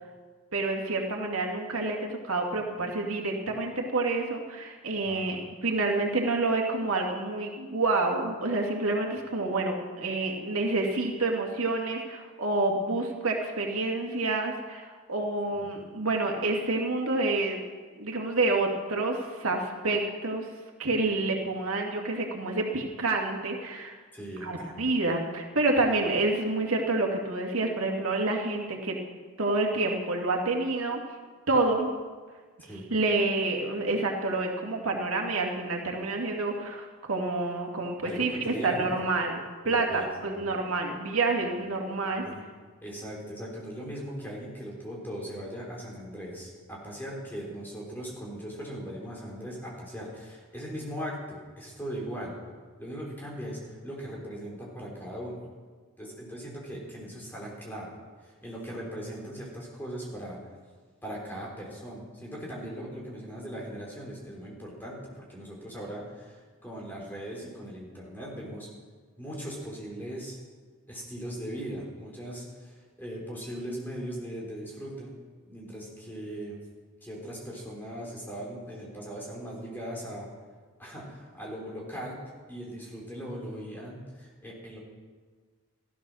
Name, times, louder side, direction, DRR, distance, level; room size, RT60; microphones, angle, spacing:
voice 1, 0.5-17.6 17.9-20.5 20.8-24.0 24.4-29.0 29.4-31.0 31.5-31.9 32.9-39.4 39.6-42.2, right 2 dB, 90° right, 1 dB, 2.3 m, -28 dB
voice 2, 5.1-5.5 15.5-15.7 24.1-24.8 32.6-32.9 38.0-38.9 39.6-40.4 42.2-42.4 42.8-52.3 52.8-55.4 56.0-57.9 58.2-60.6 61.0-68.7 69.2-70.4 70.9-75.1 75.5-76.6 77.0-80.3 80.8-82.2 82.5-84.8, equal, 10° left, -3 dB, 3.9 m, -39 dB
15.0 x 12.5 x 6.3 m, 1.5 s
head